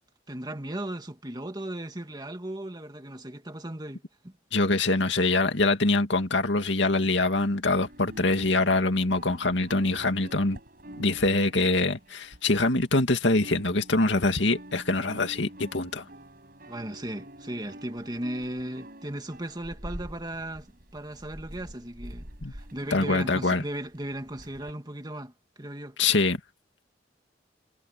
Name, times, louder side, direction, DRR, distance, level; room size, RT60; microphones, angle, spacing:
voice 1, 0.3-4.3 16.7-20.7 20.9-25.3 25.6-26.0, right 1 dB, 20° right, 2.1 m, -36 dB
voice 2, 4.5-10.6 11.0-16.0 22.4-22.5 22.9-23.6 26.0-26.4, left 2 dB, 75° left, 2.2 m, -24 dB
sound 1, 7.7-13.0 13.3-24.7, equal, 50° right, 6.6 m, -46 dB
head